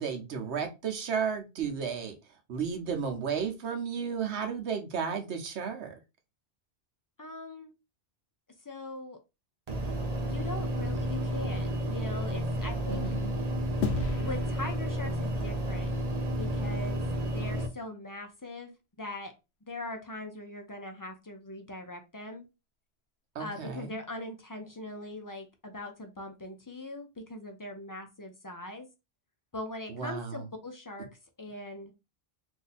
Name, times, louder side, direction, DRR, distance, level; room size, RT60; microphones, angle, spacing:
voice 1, 0.0-2.1 2.5-5.9 12.9-13.4 23.3-24.0 29.9-30.4, right 6 dB, 80° right, 1.1 m, -33 dB
voice 2, 7.2-7.7 8.6-9.2 10.2-13.1 14.2-15.9 16.3-19.3 19.7-22.4 23.4-28.9 29.5-31.1 31.4-31.9, left 2 dB, 30° left, 0.4 m, -41 dB
sound 1, 9.7-17.7, equal, 45° right, 0.7 m, -31 dB
sound 2, 13.8-16.4, left 4 dB, 75° left, 0.8 m, -36 dB
2.7 x 2.6 x 4.1 m
omnidirectional pair, 1.1 m